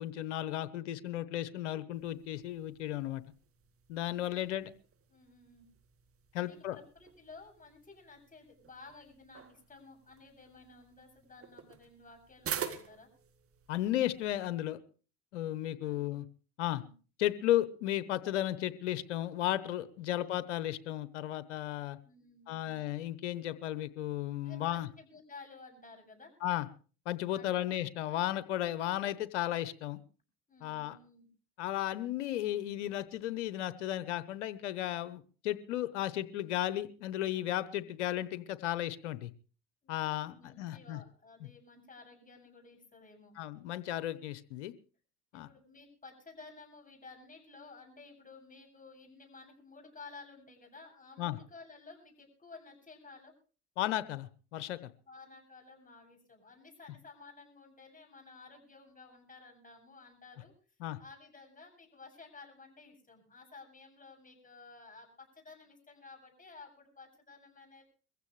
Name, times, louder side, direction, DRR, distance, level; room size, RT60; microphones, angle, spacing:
voice 1, 0.0-3.2 3.9-4.7 6.3-6.8 13.7-14.8 15.3-16.3 16.6-16.8 17.2-22.0 22.5-24.9 26.4-26.7 27.1-30.0 30.6-31.0 31.6-39.3 39.9-41.0 41.4-41.5 43.4-44.7 45.3-45.5 51.2-51.4 53.8-54.9 60.8-61.0, left 13 dB, 90° left, 16 dB, 1.0 m, -34 dB
sound 1, 1.9-14.5, right 8 dB, 40° right, 2.0 m, -47 dB
voice 2, 4.1-4.4 5.1-5.7 6.4-13.1 15.8-16.2 16.6-16.9 22.0-22.8 24.4-26.3 27.3-27.7 30.5-31.3 39.8-43.4 45.3-53.3 55.0-60.5 61.0-67.8, left 4 dB, 25° left, 3 dB, 7.9 m, -54 dB
22.5 x 15.5 x 3.3 m, 0.37 s
hypercardioid pair, 75°, 35 cm